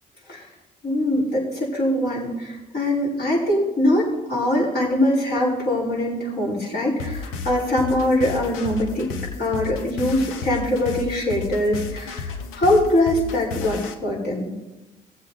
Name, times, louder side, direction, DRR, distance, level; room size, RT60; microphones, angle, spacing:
voice 1, 0.8-9.1 9.4-14.5, left 1 dB, 50° left, -5 dB, 5.2 m, -22 dB
sound 1, 7.0-13.9, left 5 dB, 80° left, 0.9 m, -33 dB
19.0 x 7.5 x 4.2 m, 1.1 s
hypercardioid pair, 50°, 21 cm